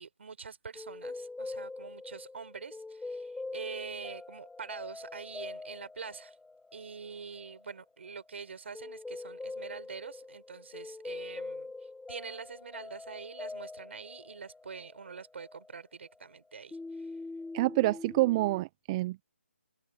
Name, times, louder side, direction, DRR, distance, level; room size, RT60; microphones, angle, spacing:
voice 1, 0.0-6.4 6.7-11.7 12.1-17.1, right 5 dB, 60° right, 6.3 m, -45 dB
sound 1, 0.7-16.4 16.7-18.6, left 3 dB, 5° left, 3.6 m, -44 dB
voice 2, 17.5-19.2, right 19 dB, 25° right, 0.9 m, -27 dB
open air
figure-of-eight pair, 150°, 7 cm